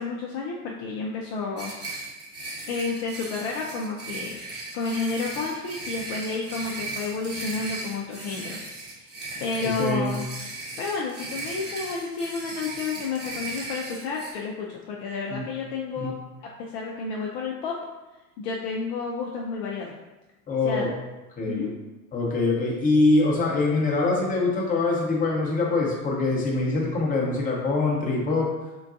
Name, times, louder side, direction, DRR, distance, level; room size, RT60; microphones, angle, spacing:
voice 1, 0.0-1.7 2.7-4.4 4.7-8.6 8.9-9.1 9.4-10.2 10.8-16.1 16.6-17.8 18.4-19.9 20.6-20.9 21.5-21.7, left 4 dB, 50° left, -2 dB, 0.5 m, -31 dB
sound 1, 1.6-14.3, right 2 dB, 25° right, 0.9 m, -37 dB
voice 2, 9.6-10.2 15.3-15.4 16.0-16.1 20.5-20.9 21.4-21.7 22.1-28.5, left 3 dB, 20° left, -2 dB, 0.7 m, -24 dB
3.8 x 2.2 x 2.5 m, 1.1 s
hypercardioid pair, 85°, 44 cm